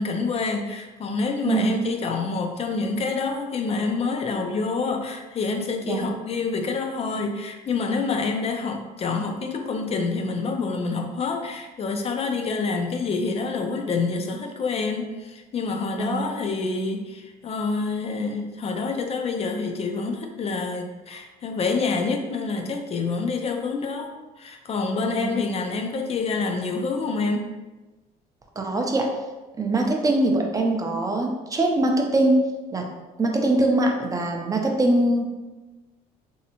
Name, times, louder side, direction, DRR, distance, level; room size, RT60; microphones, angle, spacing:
voice 1, 0.0-27.5, left 4 dB, 35° left, 4 dB, 0.4 m, -27 dB
voice 2, 28.6-29.1 29.6-32.4 32.7-32.8 33.2-35.3, right 2 dB, 20° right, 1 dB, 0.5 m, -22 dB
3.1 x 2.7 x 2.8 m, 1.2 s
cardioid pair, 110°, 17 cm